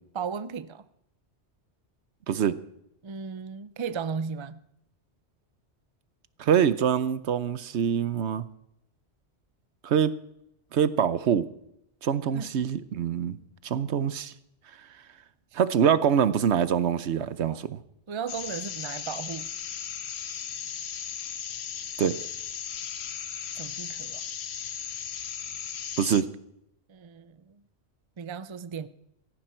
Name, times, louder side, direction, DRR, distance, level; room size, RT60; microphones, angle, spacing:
voice 1, 0.1-0.8 3.0-4.6 12.3-12.5 17.5-17.6 18.1-19.5 23.5-24.2 26.9-27.6 28.2-28.9, right 6 dB, 35° right, 0.5 m, -35 dB
voice 2, 2.3-2.6 6.4-8.4 9.8-10.2 10.7-11.5 12.0-13.4 13.6-14.3 15.5-17.8 22.0-22.2 26.0-26.3, right 8 dB, 70° right, 1.0 m, -24 dB
sound 1, 18.3-26.2, left 8 dB, 65° left, 1.1 m, -36 dB
17.0 x 15.0 x 4.4 m
omnidirectional pair, 1.2 m